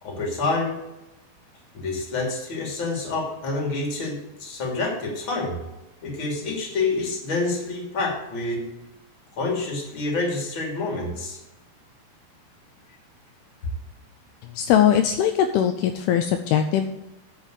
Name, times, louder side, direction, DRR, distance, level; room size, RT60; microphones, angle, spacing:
voice 1, 0.0-0.7 1.7-5.6 6.0-8.6 9.4-11.4, left 3 dB, 35° left, -1 dB, 2.9 m, -27 dB
voice 2, 14.6-16.9, left 9 dB, 85° left, 7 dB, 2.2 m, -20 dB
9.2 x 5.7 x 8.1 m, 0.97 s
omnidirectional pair, 4.9 m